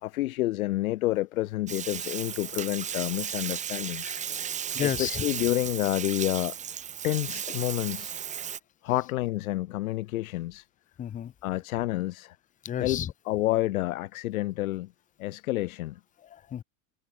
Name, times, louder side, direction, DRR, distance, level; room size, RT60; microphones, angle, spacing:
voice 1, 0.0-4.2 4.8-6.5 7.0-8.1 8.8-10.7 11.4-12.4 12.8-14.9 15.2-16.0, left 17 dB, 85° left, 3.4 m, -29 dB
Bathtub (filling or washing), 1.7-8.6, right 8 dB, 15° right, 1.7 m, -35 dB
voice 2, 4.1-5.2 11.0-11.3 12.6-13.1 16.2-16.6, left 10 dB, 20° left, 1.5 m, -33 dB
supercardioid pair, 170°, 41 cm